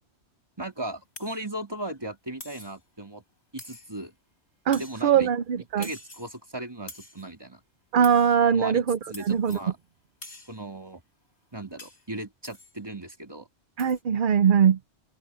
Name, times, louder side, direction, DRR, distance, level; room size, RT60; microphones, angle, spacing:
voice 1, 0.6-3.2 3.5-4.1 4.7-5.3 5.8-7.6 8.5-8.8 9.1-9.8 10.5-11.0 11.5-13.5, right 1 dB, 20° right, 3.2 m, -37 dB
sound 1, 1.2-1.5 2.4-2.8 3.6-4.1 4.7-5.1 5.8-6.4 6.9-7.3 8.0-8.4 9.1-9.7 10.2-10.6 11.8-12.1 12.4-12.8 13.8-14.0, left 1 dB, 65° left, 5.2 m, -45 dB
voice 2, 4.7-5.9 7.9-9.6 13.8-14.8, right 8 dB, 55° right, 0.7 m, -22 dB
omnidirectional pair, 1.2 m